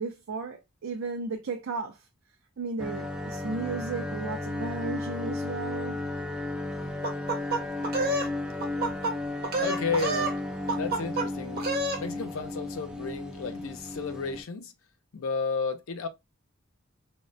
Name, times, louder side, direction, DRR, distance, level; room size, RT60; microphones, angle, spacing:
voice 1, 0.0-2.1 2.6-6.0, right 4 dB, 65° right, 0.4 m, -34 dB
sound 1, 2.8-14.4, left 2 dB, 5° right, 0.4 m, -34 dB
sound 2, 7.0-8.3 8.6-9.1 9.4-10.4 10.7-11.3 11.6-12.0, right 2 dB, 50° right, 0.8 m, -28 dB
voice 2, 9.6-10.5 10.7-11.7 12.0-14.7 15.1-16.1, left 4 dB, 75° left, 0.5 m, -32 dB
3.5 x 2.1 x 2.5 m
head